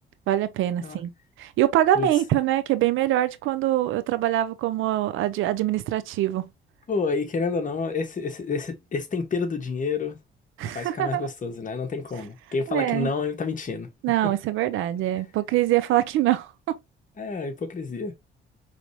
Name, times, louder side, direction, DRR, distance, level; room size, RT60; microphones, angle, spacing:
voice 1, 0.3-1.1 1.4-6.5 10.6-11.3 12.7-13.1 14.0-16.8, right 13 dB, 85° right, 0.6 m, -24 dB
voice 2, 6.9-10.2 10.7-13.9 14.2-14.3 17.2-18.1, left 4 dB, 40° left, 1.4 m, -29 dB
4.9 x 3.3 x 2.8 m
cardioid pair, 90°, 20 cm